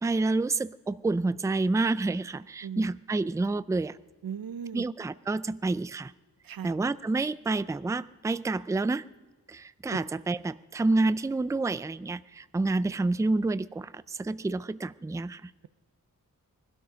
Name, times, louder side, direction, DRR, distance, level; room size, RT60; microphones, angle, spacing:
voice 1, 0.0-4.0 4.7-6.1 6.6-9.0 9.5-15.5, right 3 dB, 10° right, 17 dB, 0.4 m, -28 dB
voice 2, 4.2-4.8 6.4-6.7 9.9-10.0, right 8 dB, 85° right, 16 dB, 0.6 m, -37 dB
20.5 x 12.5 x 5.1 m, 1.3 s
wide cardioid pair, 80°, 34 cm